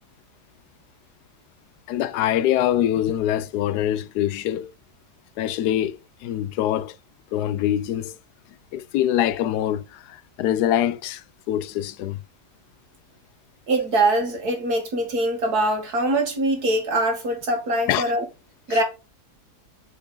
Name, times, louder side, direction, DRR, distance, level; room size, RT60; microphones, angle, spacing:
voice 1, 1.9-4.7 5.4-7.0 7.3-8.2 8.7-12.2 17.9-18.1 18.7-18.8, left 11 dB, 85° left, 1.1 m, -24 dB
voice 2, 13.7-18.2 18.7-18.8, right 1 dB, 70° right, 2.4 m, -23 dB
6.8 x 4.6 x 3.9 m
omnidirectional pair, 1.7 m